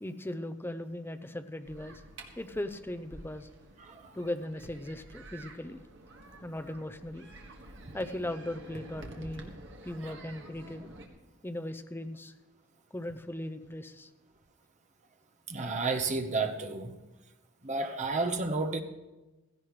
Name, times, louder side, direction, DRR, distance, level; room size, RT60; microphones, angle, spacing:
voice 1, 0.0-2.0 2.4-3.5 4.1-5.8 6.4-7.3 7.9-9.5 9.8-10.9 11.4-12.3 12.9-14.1, left 1 dB, 10° left, 8 dB, 0.6 m, -38 dB
sound 1, 1.6-11.1, right 2 dB, 60° right, 1.7 m, -50 dB
voice 2, 15.5-16.9 17.6-18.8, right 3 dB, 35° right, 5 dB, 1.0 m, -31 dB
16.0 x 15.5 x 3.2 m, 1.1 s
head